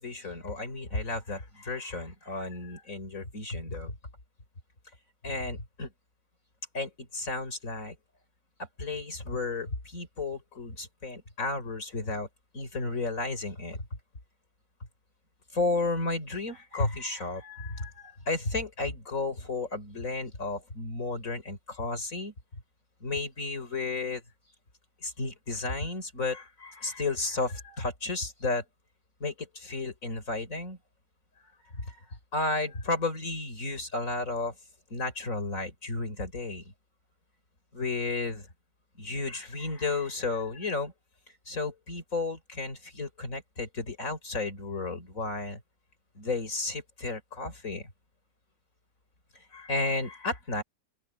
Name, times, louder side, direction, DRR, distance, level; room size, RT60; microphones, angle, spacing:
voice 1, 0.0-4.0 5.2-5.9 6.7-8.0 8.6-12.3 12.5-13.9 15.5-22.3 23.0-24.2 25.0-28.6 29.2-30.8 31.7-32.0 32.3-34.5 34.9-36.7 37.7-38.5 39.0-40.9 41.5-45.6 46.1-47.9 49.5-50.6, left 3 dB, 45° left, 5.0 m, -33 dB
open air
omnidirectional pair, 2.0 m